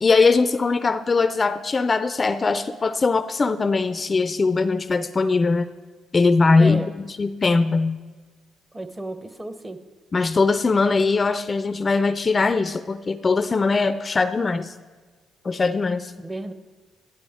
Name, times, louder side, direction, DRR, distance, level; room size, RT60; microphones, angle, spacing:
voice 1, 0.0-5.7 6.1-8.0 10.1-14.7 15.4-16.1, left 4 dB, 35° left, 13 dB, 0.4 m, -21 dB
voice 2, 8.7-9.8 16.2-16.5, right 1 dB, 20° right, 10 dB, 0.9 m, -33 dB
11.5 x 11.0 x 3.5 m, 1.4 s
hypercardioid pair, 55°, 0 cm